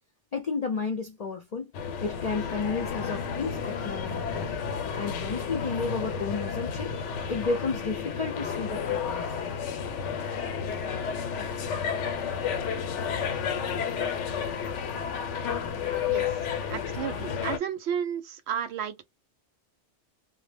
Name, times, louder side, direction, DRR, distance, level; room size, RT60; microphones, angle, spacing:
voice 1, 0.3-1.7 2.0-4.5 5.0-6.9 7.3-9.6, left 4 dB, 45° left, 0.5 m, -32 dB
sound 1, 1.7-17.6, left 7 dB, 90° left, 0.9 m, -31 dB
voice 2, 16.7-19.1, right 8 dB, 70° right, 0.8 m, -32 dB
2.1 x 2.0 x 3.3 m
omnidirectional pair, 1.2 m